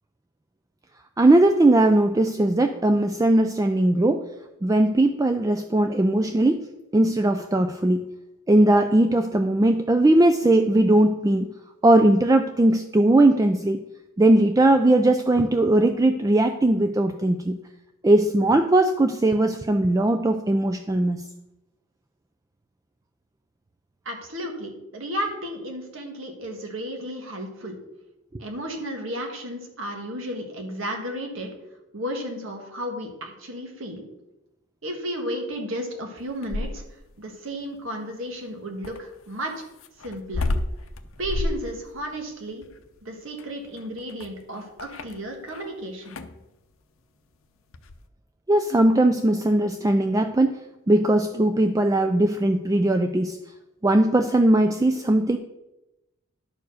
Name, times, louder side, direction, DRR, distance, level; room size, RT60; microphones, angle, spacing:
voice 1, 1.2-4.3 4.6-6.7 6.9-8.1 8.5-11.5 11.8-13.8 14.2-17.6 18.0-21.2 48.5-53.4 53.8-55.4, right 1 dB, 15° right, 7 dB, 0.3 m, -19 dB
voice 2, 24.0-27.8 28.4-31.5 31.9-34.0 34.8-36.8 37.2-39.6 40.0-40.5 41.2-42.6 43.0-46.2, equal, 65° right, 3 dB, 1.6 m, -33 dB
sound 1, 36.2-37.1 38.8-45.7 46.0-46.4 47.7-48.0, left 2 dB, 70° left, 0.6 m, -31 dB
10.5 x 4.6 x 6.4 m, 0.95 s
head